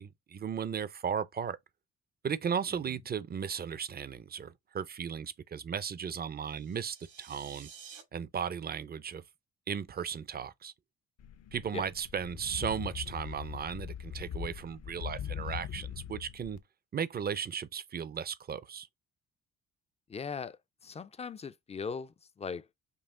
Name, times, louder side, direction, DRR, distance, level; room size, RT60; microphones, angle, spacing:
voice 1, 0.0-1.6 2.2-7.7 8.1-9.2 9.7-10.7 11.5-16.6 16.9-18.9, right 7 dB, 30° right, 0.5 m, -36 dB
sound 1, 6.4-8.0, right 7 dB, 85° right, 2.3 m, -52 dB
sound 2, 11.2-16.6, left 9 dB, 60° left, 0.6 m, -41 dB
voice 2, 20.1-22.7, left 5 dB, 20° left, 0.4 m, -40 dB
5.5 x 2.4 x 3.6 m
cardioid pair, 90°, 30 cm